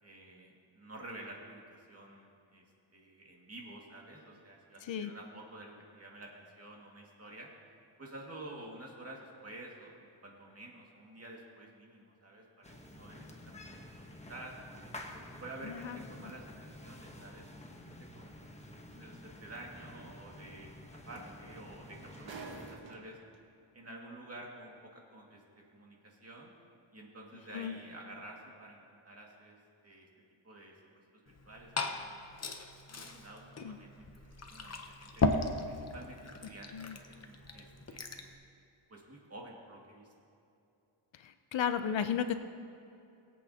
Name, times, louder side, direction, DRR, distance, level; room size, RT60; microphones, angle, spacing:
voice 1, 0.0-2.6 2.9-7.5 8.0-14.6 15.1-20.7 21.1-23.2 23.7-26.5 26.9-29.6 29.8-30.1 30.4-30.7 31.2-32.3 32.9-35.2 35.7-38.3 38.9-40.1, right 1 dB, 30° right, -2 dB, 2.1 m, -50 dB
voice 2, 4.8-5.1 15.6-16.0 27.5-27.8 33.6-33.8 36.7-37.0 41.1-42.3, left 8 dB, 65° left, 9 dB, 0.7 m, -34 dB
sound 1, 12.6-22.8, left 1 dB, 15° left, 1.1 m, -50 dB
sound 2, 18.9-19.1 20.7-20.8 21.1-23.3 24.3-24.4, right 4 dB, 65° right, 1.4 m, -49 dB
Glass / Fill (with liquid), 31.3-38.3, left 3 dB, 30° left, 0.8 m, -37 dB
21.0 x 8.4 x 2.9 m, 2.6 s
wide cardioid pair, 105°, 49 cm